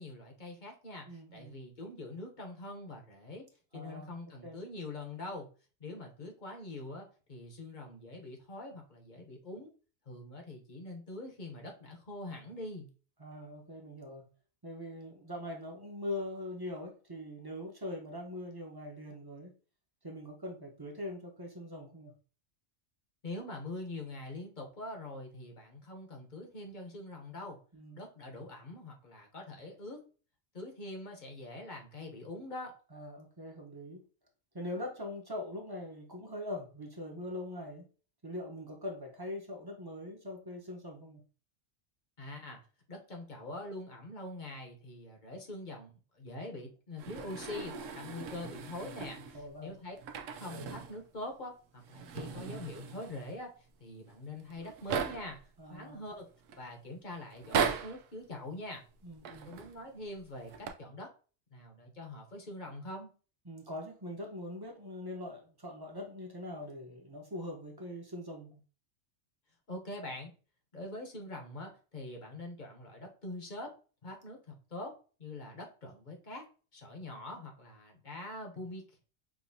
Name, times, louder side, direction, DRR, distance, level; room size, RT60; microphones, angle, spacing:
voice 1, 0.0-3.5 3.7-5.5 5.8-9.7 10.1-12.9 23.2-27.6 27.9-30.0 30.5-32.7 42.2-42.6 42.9-50.0 50.4-53.5 53.8-55.4 55.7-56.2 56.6-58.8 59.4-61.1 61.5-63.1 69.7-70.3 70.7-73.7 74.0-74.9 75.2-76.4 76.7-78.8, left 2 dB, 40° left, 1 dB, 1.0 m, -44 dB
voice 2, 1.1-1.6 3.7-4.1 4.4-4.6 13.2-14.2 14.6-19.5 20.0-22.1 27.7-28.0 32.9-34.0 34.5-37.9 38.2-41.2 49.3-49.8 55.6-56.0 59.0-59.5 63.4-68.6, left 1 dB, 20° right, 0 dB, 0.9 m, -42 dB
sound 1, 47.0-49.5 50.0-51.0 51.3-51.4 51.8-53.4 54.1-54.2 54.4-55.4 56.1-56.6 57.3-58.1 59.1-59.8 60.4-60.7, right 6 dB, 85° right, 1.0 m, -38 dB
6.0 x 2.7 x 2.7 m, 0.37 s
omnidirectional pair, 1.3 m